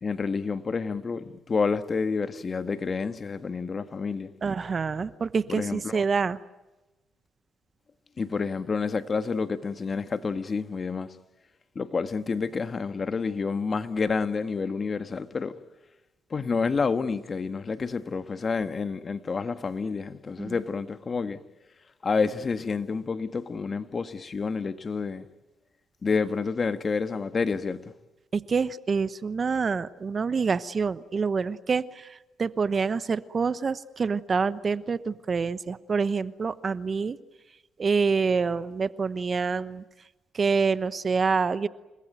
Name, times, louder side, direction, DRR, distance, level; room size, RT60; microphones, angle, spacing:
voice 1, 0.0-4.3 5.5-6.0 8.2-11.1 11.7-15.5 16.3-21.4 22.0-25.2 26.0-27.8, left 5 dB, 35° left, 1.6 m, -29 dB
voice 2, 4.4-6.4 20.4-20.6 28.3-37.2 37.8-39.8 40.3-41.7, right 5 dB, 40° right, 1.0 m, -27 dB
30.0 x 19.5 x 9.2 m
cardioid pair, 90°, 0 cm